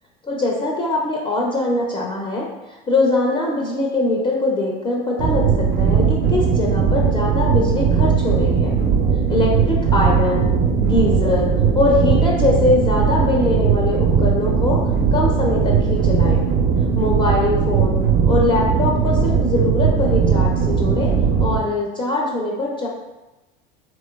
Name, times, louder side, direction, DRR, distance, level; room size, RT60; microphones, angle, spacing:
voice 1, 0.2-2.5 2.9-8.8 9.3-10.5 10.8-14.8 15.1-16.5 17.0-21.1 21.4-22.9, left 2 dB, 15° left, -2 dB, 0.5 m, -22 dB
sound 1, 5.2-21.6, right 6 dB, 35° right, 0.5 m, -18 dB
3.1 x 3.0 x 2.2 m, 1.0 s
hypercardioid pair, 85°, 30 cm